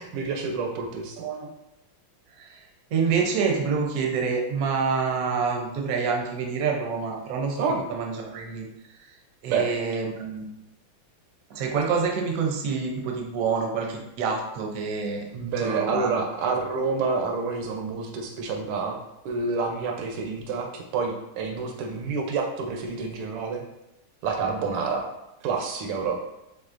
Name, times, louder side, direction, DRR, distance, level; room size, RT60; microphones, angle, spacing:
voice 1, 0.0-1.2 7.6-7.8 9.5-9.7 15.3-19.0 19.2-23.6 24.2-25.1 25.4-26.1, right 4 dB, 85° right, 3 dB, 1.6 m, -28 dB
voice 2, 1.2-1.5 2.4-2.6 2.9-7.6 7.9-8.7 9.4-10.4 11.5-15.2 15.6-16.1, right 5 dB, 65° right, 1 dB, 0.8 m, -27 dB
5.3 x 3.6 x 2.5 m, 0.88 s
omnidirectional pair, 2.4 m